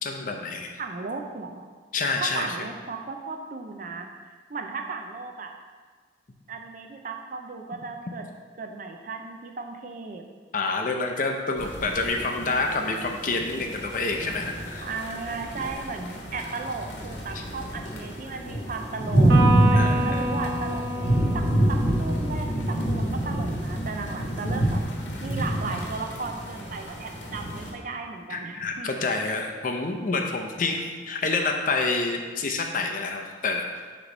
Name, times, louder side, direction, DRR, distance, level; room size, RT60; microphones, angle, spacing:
voice 1, 0.0-0.7 1.9-2.5 10.5-14.9 17.3-17.4 19.8-20.2 28.3-33.7, left 3 dB, 45° left, 3 dB, 0.6 m, -28 dB
voice 2, 0.8-1.7 2.1-5.5 6.5-8.3 8.6-10.2 14.8-24.8 25.2-28.9, right 4 dB, 45° right, 3 dB, 0.5 m, -35 dB
sound 1, 11.6-27.7, right 1 dB, 85° left, 1.2 m, -27 dB
Electric guitar, 19.3-22.8, right 2 dB, 90° right, 1.5 m, -29 dB
6.8 x 3.1 x 5.1 m, 1.5 s
head